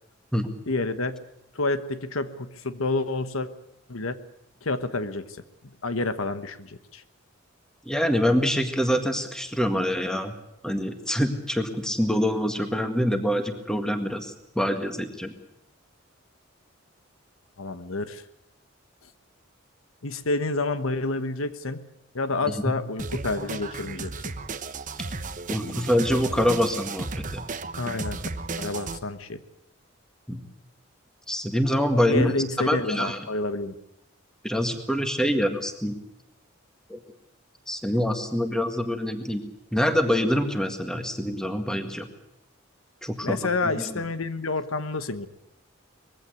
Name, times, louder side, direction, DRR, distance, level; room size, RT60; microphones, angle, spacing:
voice 1, 0.7-1.2 1.5-3.5 3.9-4.2 4.6-7.0 17.6-18.2 19.0-19.1 20.0-21.9 22.1-24.1 27.8-28.2 28.6-29.4 32.1-33.8 43.2-45.3, left 3 dB, 85° left, 11 dB, 1.2 m, -29 dB
voice 2, 7.9-10.3 10.6-15.3 22.5-22.6 25.5-27.4 30.3-30.4 31.3-32.3 32.6-33.2 34.4-36.0 36.9-37.0 37.7-39.4 39.7-42.1 43.0-43.4 43.6-43.9, equal, 5° left, 6 dB, 1.8 m, -25 dB
sound 1, 23.0-29.0, right 3 dB, 40° right, 1.0 m, -34 dB
21.0 x 15.5 x 9.5 m, 0.81 s
head